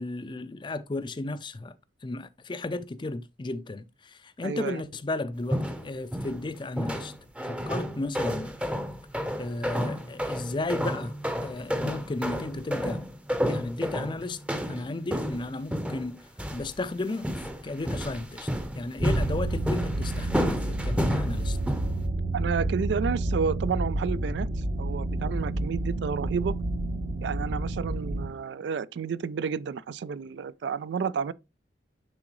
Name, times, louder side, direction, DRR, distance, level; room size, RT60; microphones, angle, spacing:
voice 1, 0.0-1.8 2.0-7.1 7.4-8.6 9.4-11.1 11.4-13.0 13.5-14.4 14.7-16.2 16.5-17.3 17.6-18.5 18.7-21.6, left 2 dB, 25° left, 0.4 m, -34 dB
voice 2, 4.4-4.8 22.3-26.5 27.2-31.3, right 6 dB, 70° right, 0.3 m, -31 dB
sound 1, 5.5-6.5 6.8-22.0, equal, 5° right, 0.7 m, -31 dB
sound 2, 19.0-28.3, right 2 dB, 50° right, 0.9 m, -30 dB
9.5 x 3.7 x 3.0 m
head